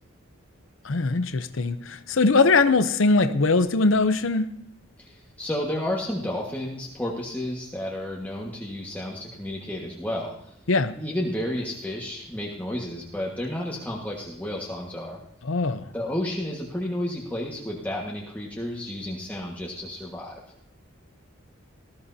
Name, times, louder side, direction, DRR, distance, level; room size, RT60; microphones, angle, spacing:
voice 1, 0.8-4.5 10.7-10.9 15.4-15.9, left 3 dB, 65° left, 0.7 m, -21 dB
voice 2, 5.0-10.3 11.0-15.2 15.9-20.4, left 1 dB, 10° left, 1.6 m, -31 dB
19.5 x 14.0 x 2.8 m
head